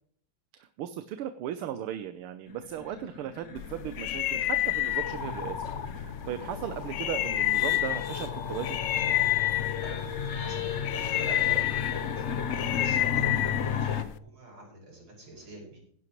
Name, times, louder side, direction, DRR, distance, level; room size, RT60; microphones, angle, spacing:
voice 1, 0.5-5.7 5.9-8.8, right 10 dB, 90° right, 10 dB, 1.7 m, -37 dB
sound 1, 2.5-14.0, left 7 dB, 55° left, 0.8 m, -34 dB
sound 2, 3.6-14.2, left 14 dB, 70° left, 1.2 m, -30 dB
voice 2, 9.2-9.5 9.8-12.3 12.6-15.8, right 2 dB, 70° right, -1 dB, 6.6 m, -45 dB
16.5 x 11.0 x 3.1 m, 0.63 s
omnidirectional pair, 2.3 m